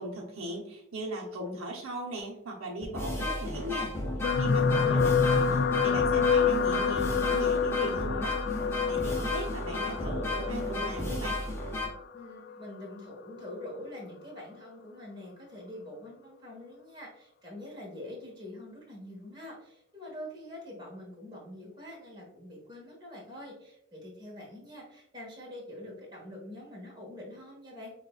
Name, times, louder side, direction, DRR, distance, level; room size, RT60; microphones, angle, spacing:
voice 1, 0.0-3.9 4.3-8.4 8.9-11.4, right 1 dB, 80° right, -1 dB, 0.9 m, -38 dB
sound 1, 2.2-2.3 2.8-11.9, left 2 dB, 10° left, 0.7 m, -34 dB
sound 2, 4.2-12.7 13.4-13.7 14.0-14.1, left 5 dB, 50° left, 0.3 m, -28 dB
voice 2, 4.7-5.4 12.1-27.9, left 1 dB, 20° right, -4 dB, 1.3 m, -45 dB
6.4 x 2.5 x 2.3 m, 0.75 s
head